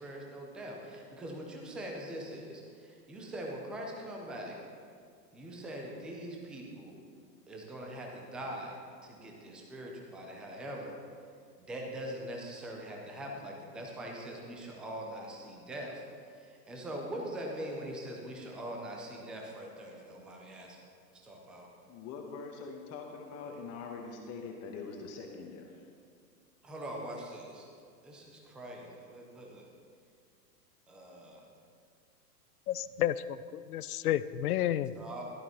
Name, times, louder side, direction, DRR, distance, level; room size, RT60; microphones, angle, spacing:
voice 1, 0.0-4.6 5.3-6.9 7.5-10.9 11.6-20.8 21.1-21.7 26.6-27.7 28.0-29.7 30.9-31.4 34.9-35.2, right 1 dB, ahead, 0 dB, 0.4 m, -42 dB
voice 2, 21.9-25.8, left 4 dB, 30° left, 2 dB, 1.2 m, -43 dB
voice 3, 32.7-34.9, left 12 dB, 65° left, 16 dB, 0.5 m, -31 dB
15.5 x 12.0 x 3.0 m, 2.3 s
hypercardioid pair, 110°, 50 cm